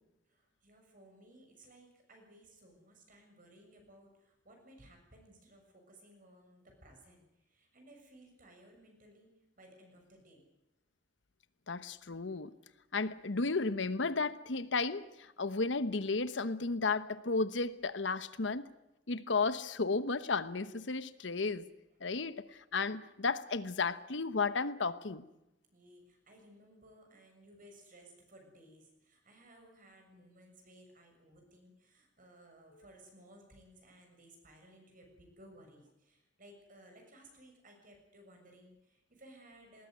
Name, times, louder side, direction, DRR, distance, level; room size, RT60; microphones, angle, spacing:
voice 1, 0.3-9.3 9.6-10.5 25.7-39.9, right 1 dB, 50° right, 7.1 m, -59 dB
voice 2, 11.7-12.5 12.9-18.7 19.1-21.6 22.0-22.5 22.7-25.3, left 4 dB, 75° left, 1.0 m, -33 dB
20.0 x 19.0 x 9.5 m
head